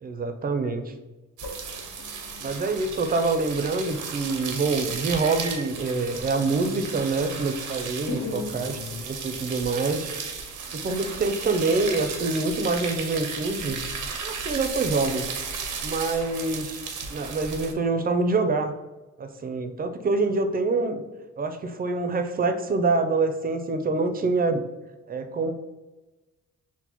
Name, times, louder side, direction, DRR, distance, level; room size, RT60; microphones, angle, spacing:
voice 1, 0.0-0.8 2.4-10.1 10.7-13.8 14.2-15.2 15.8-16.8 17.1-18.7 19.2-21.0 21.4-24.6 25.1-25.5, right 3 dB, 30° right, 7 dB, 0.4 m, -26 dB
voice 2, 1.4-2.5 8.1-9.0 10.7-10.8, left 4 dB, 55° left, 6 dB, 0.5 m, -36 dB
sound 1, 1.4-17.7, right 5 dB, 85° right, 0.7 m, -34 dB
6.0 x 2.1 x 2.9 m, 1.1 s
cardioid pair, 110°, 30 cm